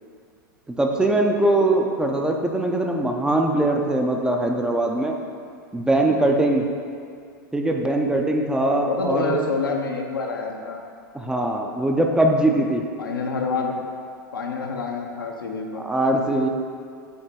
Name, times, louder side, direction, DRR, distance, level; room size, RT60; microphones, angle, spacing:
voice 1, 0.8-5.2 5.7-6.7 7.5-9.4 11.1-12.8 15.7-16.5, right 1 dB, 5° right, 2 dB, 0.5 m, -21 dB
voice 2, 8.8-10.8 13.0-13.7 14.3-15.8, left 4 dB, 80° left, 1 dB, 0.7 m, -27 dB
7.8 x 2.9 x 4.2 m, 2.2 s
figure-of-eight pair, 95°, 11 cm